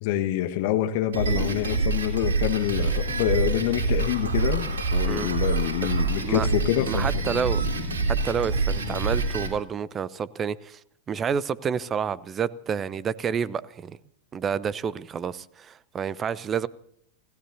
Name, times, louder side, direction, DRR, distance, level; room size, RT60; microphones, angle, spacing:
voice 1, 0.0-7.4, left 12 dB, 50° left, 1.5 m, -26 dB
Drum kit, 1.1-9.5, right 3 dB, 65° right, 3.7 m, -26 dB
voice 2, 6.1-6.5 6.9-7.6 8.2-10.8 11.1-14.0 14.3-16.7, right 7 dB, 25° right, 0.8 m, -29 dB
29.0 x 17.5 x 2.8 m
figure-of-eight pair, 90°, 0 cm